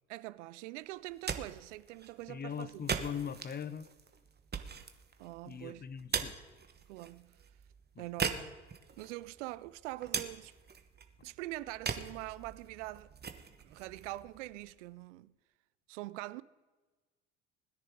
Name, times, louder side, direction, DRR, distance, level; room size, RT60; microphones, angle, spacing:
voice 1, 0.1-2.9 5.2-5.9 6.9-7.4 8.0-8.6 9.0-10.5 11.2-13.1 13.6-15.3 15.9-16.4, right 18 dB, 80° right, 0.5 m, -44 dB
sound 1, 1.0-14.9, right 6 dB, 25° right, 1.2 m, -42 dB
voice 2, 2.3-3.9 5.4-6.4 7.9-8.3, left 7 dB, 25° left, 0.8 m, -41 dB
20.5 x 10.0 x 3.7 m
hypercardioid pair, 65°, 35 cm